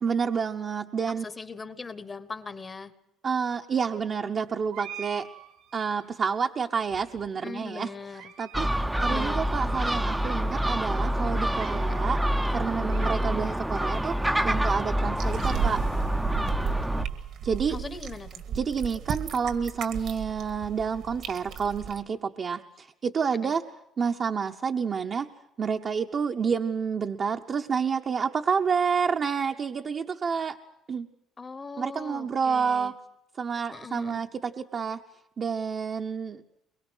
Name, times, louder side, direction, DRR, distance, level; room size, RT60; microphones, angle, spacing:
voice 1, 0.0-1.3 3.2-5.3 5.7-7.9 8.4-8.7 9.0-12.2 12.5-14.2 14.4-15.8 17.4-17.8 18.5-23.6 24.0-25.3 25.6-30.6 30.9-31.1 31.8-32.9 33.4-35.0 35.4-36.4, right 6 dB, 35° right, 3 dB, 0.9 m, -29 dB
voice 2, 1.2-2.9 7.4-8.3 9.1-9.5 11.9-12.1 12.8-13.1 17.7-18.4 23.4-23.5 31.4-32.9 33.7-34.2, left 4 dB, 25° left, 13 dB, 1.1 m, -40 dB
sound 1, 4.7-6.1 6.8-7.5 8.0-8.7 8.9-9.0 9.7-9.8 10.2-10.3 11.3-12.1 12.6-13.6, right 9 dB, 80° right, 2.4 m, -46 dB
Gull seagull, 8.5-17.1, equal, 5° right, 0.7 m, -27 dB
sound 2, 15.2-22.0, right 8 dB, 65° right, 1.7 m, -35 dB
23.0 x 22.5 x 6.3 m, 0.87 s
cardioid pair, 125°, 0 cm